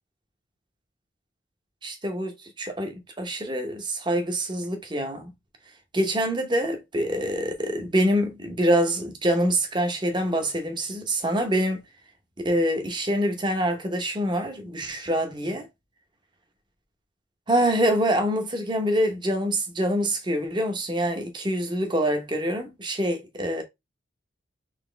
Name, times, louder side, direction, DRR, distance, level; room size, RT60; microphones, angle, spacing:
voice 1, 1.8-5.3 5.9-11.8 12.4-15.7 17.5-23.6, equal, 25° right, 0.8 m, -25 dB
4.1 x 2.9 x 3.3 m
head